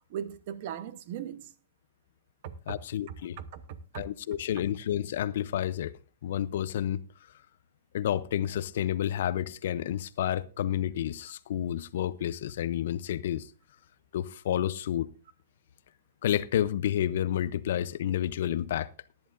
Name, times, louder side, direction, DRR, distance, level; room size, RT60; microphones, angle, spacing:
voice 1, 0.1-1.5 2.4-2.8 3.1-4.0 4.5-4.6, right 9 dB, 45° right, 0.9 m, -39 dB
voice 2, 2.7-3.4 3.9-5.9 6.2-7.0 7.9-13.5 14.1-15.1 16.2-18.9, left 11 dB, 60° left, 0.6 m, -30 dB
18.0 x 10.5 x 2.6 m
supercardioid pair, 170°, 0 cm